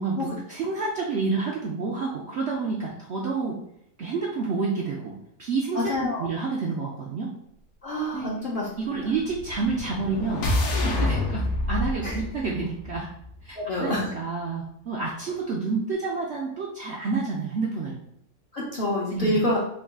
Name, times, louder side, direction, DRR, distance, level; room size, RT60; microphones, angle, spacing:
voice 1, 0.0-3.6 4.0-5.1 5.4-5.9 6.2-7.3 8.1-8.3 8.8-10.4 10.8-13.1 13.4-18.0 19.1-19.5, right 4 dB, 65° right, -2 dB, 0.7 m, -29 dB
voice 2, 5.7-6.3 7.8-8.7 12.0-12.1 13.6-14.1 18.5-19.6, left 1 dB, 45° left, -5 dB, 0.7 m, -27 dB
sound 1, 9.3-13.5, left 2 dB, 65° left, 1.1 m, -28 dB
3.8 x 2.4 x 3.5 m, 0.75 s
omnidirectional pair, 1.6 m